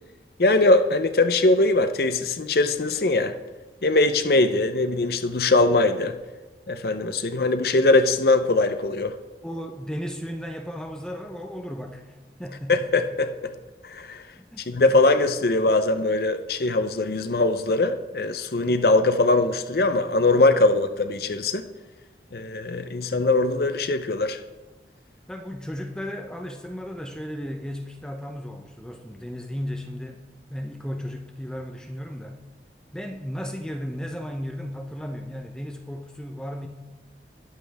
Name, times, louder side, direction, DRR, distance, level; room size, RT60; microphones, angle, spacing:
voice 1, 0.4-3.3 3.8-6.2 6.7-9.1 12.7-13.5 13.8-14.2 14.7-21.7 22.3-24.4, left 2 dB, 55° left, 9 dB, 0.6 m, -21 dB
voice 2, 9.4-12.9 14.4-15.0 25.3-32.4 32.9-36.7, equal, 5° left, 3 dB, 0.7 m, -35 dB
20.5 x 7.7 x 3.5 m, 1.2 s
head